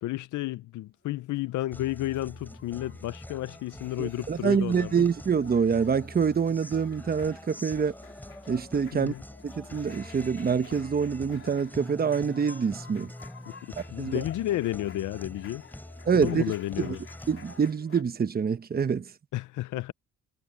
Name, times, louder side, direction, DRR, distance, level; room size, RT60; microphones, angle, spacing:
voice 1, 0.0-5.0 8.9-9.2 13.5-15.6 16.1-17.0 19.3-19.9, left 15 dB, 80° left, 0.7 m, -32 dB
sound 1, 1.0-18.0, left 6 dB, 45° left, 3.8 m, -52 dB
Guitar, 1.7-17.7, left 1 dB, 5° left, 4.6 m, -45 dB
voice 2, 4.0-7.9 8.5-9.1 9.4-13.1 13.8-14.2 16.1-16.4 16.8-17.0 17.3-19.1, right 6 dB, 30° right, 1.0 m, -26 dB
cardioid pair, 90°, 30 cm